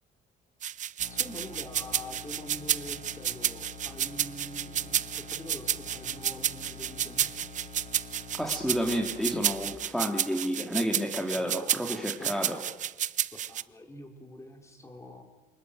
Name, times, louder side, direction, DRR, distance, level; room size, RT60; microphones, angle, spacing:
sound 1, 0.6-13.6, right 10 dB, 45° right, 0.7 m, -31 dB
sound 2, 1.0-9.8, left 3 dB, 50° left, 4.1 m, -46 dB
voice 1, 1.1-7.3 11.3-12.5 13.5-15.2, left 1 dB, 15° left, 3 dB, 5.0 m, -45 dB
voice 2, 8.4-12.6, equal, ahead, 1 dB, 2.8 m, -30 dB
26.5 x 19.0 x 9.4 m, 1.2 s
cardioid pair, 110°, 17 cm